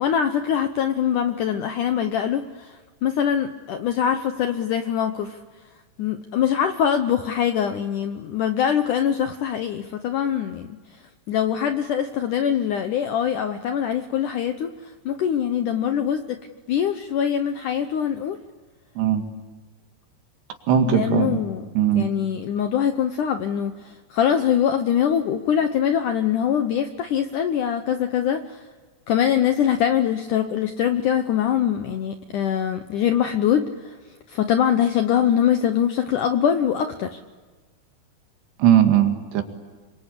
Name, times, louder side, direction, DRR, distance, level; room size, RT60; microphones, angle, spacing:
voice 1, 0.0-5.4 6.0-10.8 11.3-14.7 15.1-16.4 16.7-18.4 20.9-28.6 29.1-34.0 34.3-37.2, left 9 dB, 75° left, 8 dB, 1.9 m, -23 dB
voice 2, 20.7-21.4 21.8-22.1 38.6-39.4, right 9 dB, 80° right, 5 dB, 4.3 m, -19 dB
27.0 x 24.5 x 8.5 m, 1.4 s
omnidirectional pair, 4.9 m